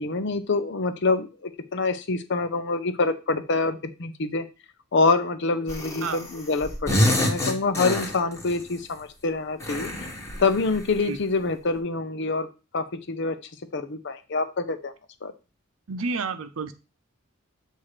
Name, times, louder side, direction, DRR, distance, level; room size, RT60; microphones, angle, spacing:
voice 1, 0.0-4.5 4.9-9.9 10.4-12.5 12.7-13.4 13.7-14.9 15.2-15.3, left 3 dB, 60° left, 10 dB, 0.7 m, -26 dB
sound 1, 5.7-6.4 6.6-8.6 9.6-11.1, left 1 dB, 15° left, 1.2 m, -27 dB
voice 2, 15.9-16.7, right 4 dB, 85° right, 10 dB, 0.7 m, -30 dB
7.3 x 2.8 x 4.8 m, 0.31 s
head